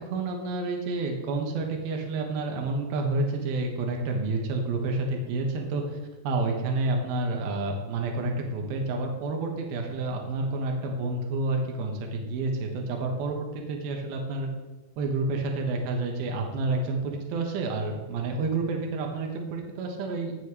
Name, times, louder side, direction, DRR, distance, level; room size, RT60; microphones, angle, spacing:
voice 1, 0.0-6.0 6.2-14.5 15.0-20.4, right 3 dB, 70° right, 2 dB, 3.0 m, -29 dB
17.0 x 6.6 x 3.3 m, 1.1 s
omnidirectional pair, 4.9 m